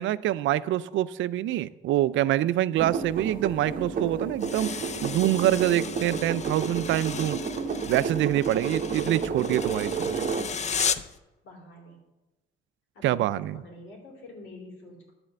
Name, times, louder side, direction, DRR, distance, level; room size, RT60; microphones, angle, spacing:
voice 1, 0.0-7.4 7.9-10.1 13.0-13.5, right 13 dB, 75° right, 16 dB, 0.4 m, -25 dB
sound 1, 2.8-10.8, right 5 dB, 45° right, 0.9 m, -31 dB
sound 2, 4.4-11.2, left 6 dB, 35° left, 0.5 m, -35 dB
voice 2, 8.4-9.0 11.4-12.0 12.9-15.1, left 1 dB, 80° left, -1 dB, 2.9 m, -47 dB
10.5 x 4.2 x 7.7 m, 1.0 s
cardioid pair, 90°, 20 cm